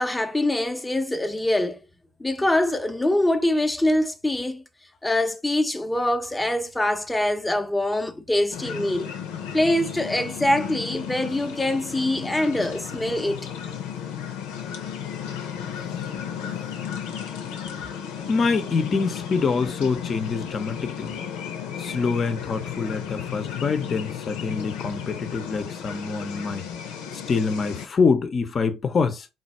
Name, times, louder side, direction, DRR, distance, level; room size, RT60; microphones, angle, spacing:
voice 1, 0.0-1.8 2.2-4.6 5.0-9.1 9.5-13.5, left 1 dB, 10° left, 0.8 m, -24 dB
sound 1, 8.5-27.9, left 8 dB, 90° left, 0.9 m, -34 dB
voice 2, 18.3-21.2 21.8-29.3, left 4 dB, 40° left, 0.8 m, -25 dB
3.9 x 2.5 x 4.2 m
supercardioid pair, 75°, 0 cm